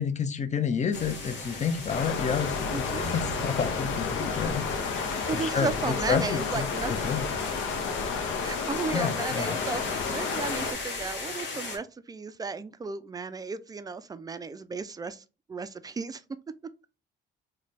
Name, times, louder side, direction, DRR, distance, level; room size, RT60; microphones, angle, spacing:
voice 1, 0.0-7.3 8.9-9.6, left 6 dB, 35° left, 0.6 m, -30 dB
sound 1, 0.9-11.8, left 2 dB, 65° left, 1.3 m, -36 dB
Stream, 1.9-10.7, left 5 dB, 80° left, 0.6 m, -32 dB
voice 2, 2.7-3.1 5.3-6.9 8.4-15.2 15.5-16.2, right 4 dB, 20° right, 0.3 m, -34 dB
3.1 x 2.2 x 4.0 m
cardioid pair, 90°, 20 cm